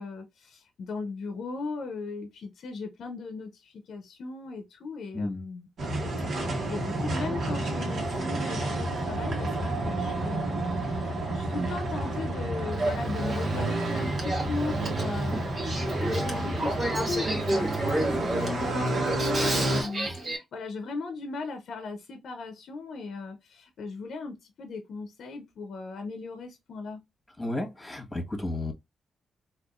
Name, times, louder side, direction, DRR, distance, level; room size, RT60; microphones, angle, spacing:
voice 1, 0.0-5.7 6.4-27.0, left 3 dB, 75° left, 0.6 m, -38 dB
sound 1, 5.8-19.8, right 2 dB, 65° right, 1.1 m, -30 dB
Male speech man speaking / Female speech woman speaking / Conversation, 12.7-20.4, right 1 dB, 45° right, 1.2 m, -32 dB
voice 2, 27.4-28.7, left 2 dB, 20° left, 1.2 m, -33 dB
3.6 x 2.4 x 2.4 m
supercardioid pair, 60°, 0 cm